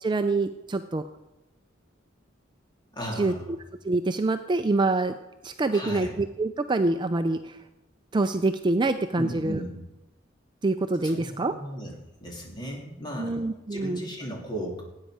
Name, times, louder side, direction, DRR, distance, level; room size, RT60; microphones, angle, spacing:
voice 1, 0.0-1.0 3.2-3.3 3.8-5.1 5.4-7.6 8.1-9.6 10.6-11.5 13.2-14.0, right 2 dB, 25° right, 8 dB, 0.4 m, -25 dB
voice 2, 2.9-3.5 5.7-6.1 9.2-9.8 11.0-11.9 12.2-13.4 13.7-14.8, equal, 20° left, -1 dB, 2.7 m, -36 dB
18.0 x 9.0 x 4.9 m, 1.0 s
head